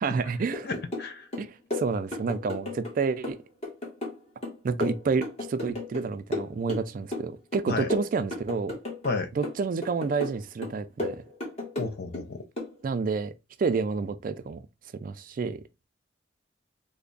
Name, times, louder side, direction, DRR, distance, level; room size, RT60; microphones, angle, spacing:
voice 1, 0.0-0.7 1.4-3.4 4.6-8.7 9.4-11.2 12.8-13.3 13.6-14.6 15.0-15.6, right 4 dB, 45° right, 0.3 m, -29 dB
sound 1, 0.5-1.1 1.3-2.9 3.2-6.0 6.3-7.3 7.5-9.1 9.4-10.4 10.6-12.2 12.6-12.7, left 2 dB, 35° left, 1.2 m, -34 dB
voice 2, 0.6-1.3 7.7-7.9 9.0-9.3 11.8-12.5, left 3 dB, 55° left, 0.5 m, -32 dB
3.3 x 2.1 x 3.8 m
head